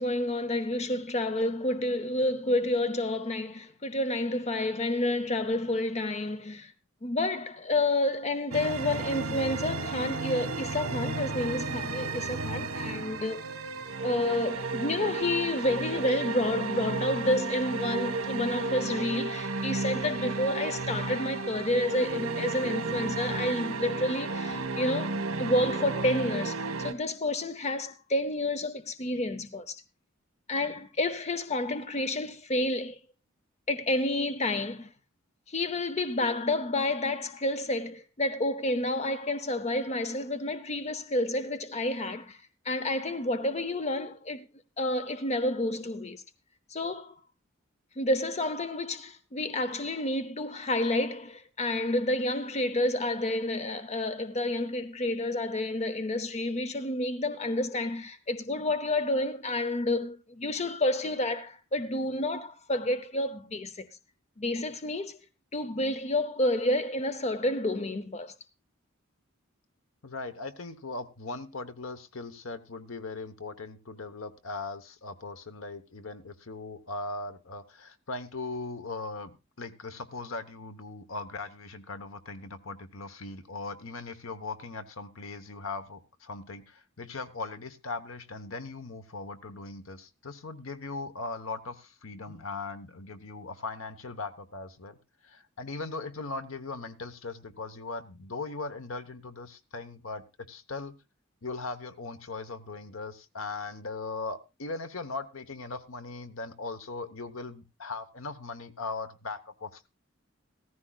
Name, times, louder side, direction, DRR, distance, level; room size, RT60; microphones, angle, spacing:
voice 1, 0.0-6.7 7.0-13.4 14.0-29.8 30.5-33.0 33.7-34.9 35.5-42.4 42.6-44.4 44.8-46.2 46.7-47.1 48.0-63.9 64.4-65.2 65.5-68.3 92.3-92.4, left 1 dB, 30° left, 0.7 m, -29 dB
sound 1, 8.5-26.9, right 3 dB, 75° right, 1.3 m, -33 dB
voice 2, 70.0-95.0 95.2-101.0 101.4-109.9, left 3 dB, 75° left, 1.1 m, -39 dB
15.5 x 14.5 x 2.3 m
head